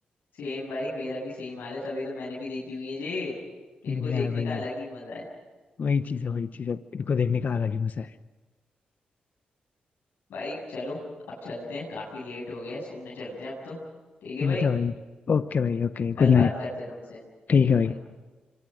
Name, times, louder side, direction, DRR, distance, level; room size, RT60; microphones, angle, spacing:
voice 1, 0.3-3.3 3.8-5.2 10.3-11.0 11.3-13.8 14.2-14.7 16.2-17.2 17.8-18.0, left 2 dB, 85° left, -5 dB, 7.7 m, -34 dB
voice 2, 3.9-4.6 5.8-8.1 14.4-14.9 15.3-16.5 17.5-18.0, left 6 dB, 60° left, 11 dB, 0.8 m, -24 dB
26.5 x 24.0 x 6.5 m, 1.3 s
cardioid pair, 55°, 3 cm